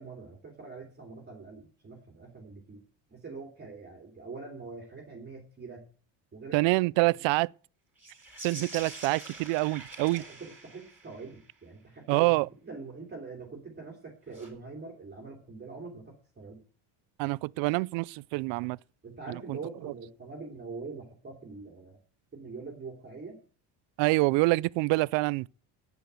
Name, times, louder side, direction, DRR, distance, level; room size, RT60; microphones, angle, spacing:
voice 1, 0.0-2.8 3.1-5.8 6.3-6.7 7.1-7.3 10.1-12.3 12.6-16.6 19.0-22.0 22.3-23.4, right 4 dB, 20° right, 2.8 m, -44 dB
voice 2, 6.5-7.5 8.4-10.2 12.1-12.5 17.2-18.8 19.5-19.6 24.0-25.5, right 23 dB, 70° right, 0.5 m, -26 dB
sound 1, 8.0-11.5 14.3-14.5, right 2 dB, 5° right, 4.5 m, -45 dB
10.5 x 9.2 x 8.0 m
cardioid pair, 150°, 47 cm